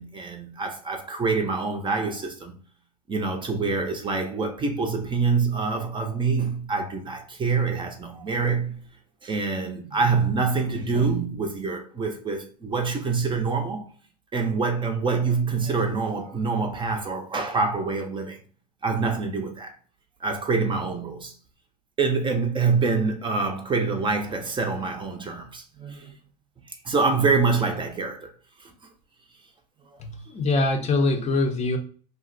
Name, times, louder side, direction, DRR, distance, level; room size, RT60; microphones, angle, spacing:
voice 1, 0.0-2.5 3.1-8.8 9.2-13.8 14.3-18.4 18.8-19.7 20.2-21.3 22.0-26.1 26.7-28.3 28.6-28.7, right 4 dB, 25° right, 0.6 m, -26 dB
voice 2, 30.0-31.8, left 2 dB, 35° left, 0.6 m, -23 dB
2.5 x 2.1 x 3.8 m
supercardioid pair, 95°, 20 cm